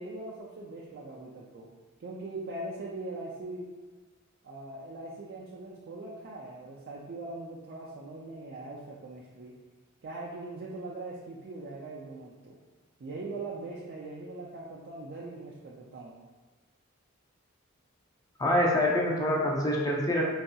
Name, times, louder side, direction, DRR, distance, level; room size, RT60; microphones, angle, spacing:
voice 1, 0.0-1.7 2.0-3.7 4.4-9.5 10.0-12.6 13.0-16.1, right 2 dB, 50° right, -4 dB, 0.4 m, -41 dB
voice 2, 18.4-20.2, left 1 dB, 20° left, -3 dB, 0.6 m, -25 dB
4.0 x 2.6 x 2.2 m, 1.3 s
head